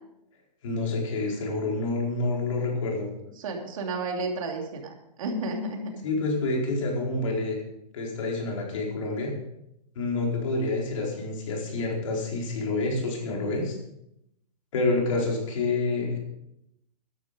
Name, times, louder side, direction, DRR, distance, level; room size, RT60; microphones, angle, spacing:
voice 1, 0.6-3.1 6.0-7.6 7.9-9.3 9.9-13.8 14.7-16.2, left 2 dB, 50° left, -1 dB, 4.5 m, -28 dB
voice 2, 3.4-5.9, right 2 dB, 55° right, 2 dB, 2.7 m, -32 dB
12.5 x 11.0 x 5.1 m, 0.81 s
hypercardioid pair, 170°, 21 cm